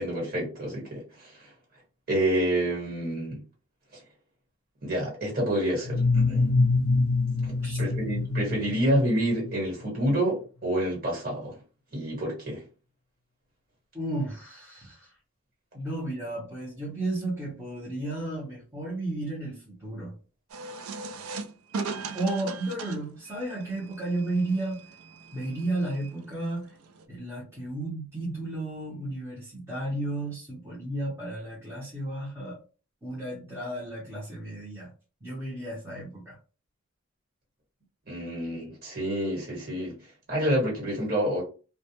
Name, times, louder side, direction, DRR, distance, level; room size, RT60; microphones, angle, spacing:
voice 1, 0.0-1.5 2.1-3.4 3.9-4.0 4.8-6.5 7.4-11.6 11.9-12.6 38.1-40.0 40.3-41.4, right 1 dB, 40° right, 1.3 m, -28 dB
sound 1, 5.8-9.5, left 3 dB, 70° left, 0.5 m, -25 dB
voice 2, 13.9-15.1 15.7-20.1 22.1-24.8 25.3-26.7 27.1-32.6 33.0-34.9 35.2-36.4, right 2 dB, 10° right, 0.7 m, -33 dB
sound 2, 20.5-27.1, right 4 dB, 70° right, 0.4 m, -39 dB
2.2 x 2.1 x 2.8 m
head